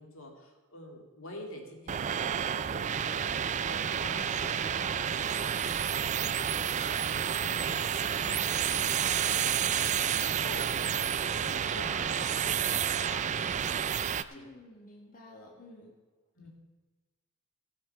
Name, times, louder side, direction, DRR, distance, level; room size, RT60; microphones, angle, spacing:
voice 1, 0.0-6.8 7.2-13.8 14.3-14.5 16.4-16.5, left 1 dB, 65° left, 2 dB, 2.2 m, -48 dB
sound 1, 1.9-14.2, right 8 dB, 35° right, 0.4 m, -30 dB
voice 2, 14.3-16.0, left 1 dB, 40° left, -2 dB, 1.6 m, -51 dB
16.5 x 6.6 x 5.7 m, 1.3 s
head